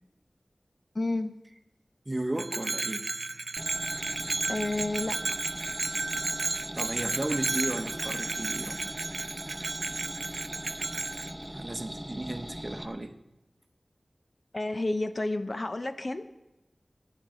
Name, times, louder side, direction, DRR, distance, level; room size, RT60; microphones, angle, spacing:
voice 1, 0.9-1.3 4.5-5.2 14.5-16.3, left 2 dB, 50° left, 9 dB, 0.7 m, -30 dB
voice 2, 2.1-3.0 6.7-9.0 11.5-13.1, right 1 dB, 35° right, 7 dB, 0.9 m, -34 dB
Bell, 2.4-11.3, right 3 dB, 75° right, 0.4 m, -33 dB
sound 1, 3.6-12.9, equal, 5° right, 0.8 m, -41 dB
17.5 x 9.9 x 3.7 m, 0.96 s
wide cardioid pair, 65°, 0 cm